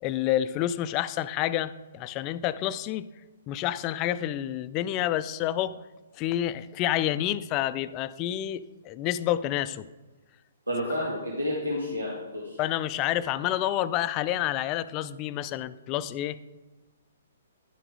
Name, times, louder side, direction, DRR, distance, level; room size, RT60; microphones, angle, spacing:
voice 1, 0.0-3.1 3.5-5.7 6.2-8.6 8.8-9.9 12.6-16.4, left 12 dB, 30° left, 14 dB, 0.4 m, -28 dB
voice 2, 10.7-12.6, left 1 dB, 85° right, -3 dB, 1.8 m, -30 dB
11.0 x 6.1 x 4.8 m, 1.2 s
figure-of-eight pair, 125°, 0 cm